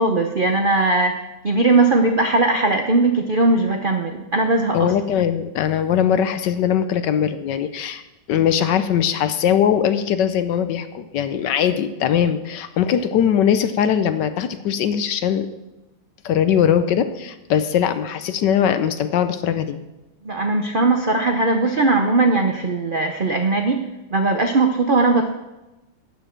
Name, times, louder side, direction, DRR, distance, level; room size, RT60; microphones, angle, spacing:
voice 1, 0.0-4.9 20.2-25.3, right 3 dB, 60° right, 4 dB, 0.5 m, -19 dB
voice 2, 4.7-8.0 8.3-15.5 16.2-19.8, left 9 dB, 70° left, 11 dB, 1.2 m, -20 dB
12.5 x 9.0 x 4.4 m, 1.0 s
omnidirectional pair, 2.1 m